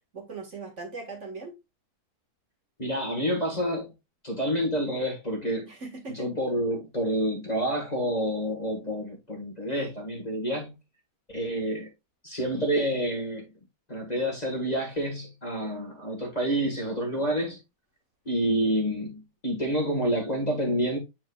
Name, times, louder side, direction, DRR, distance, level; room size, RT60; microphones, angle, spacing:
voice 1, 0.1-1.6 5.7-6.3, right 4 dB, 45° right, 2.0 m, -39 dB
voice 2, 2.8-3.9 4.2-5.7 6.1-10.7 11.3-11.9 12.2-13.5 13.9-17.6 18.2-21.0, equal, 25° left, 1.6 m, -28 dB
8.6 x 4.6 x 2.4 m
omnidirectional pair, 1.7 m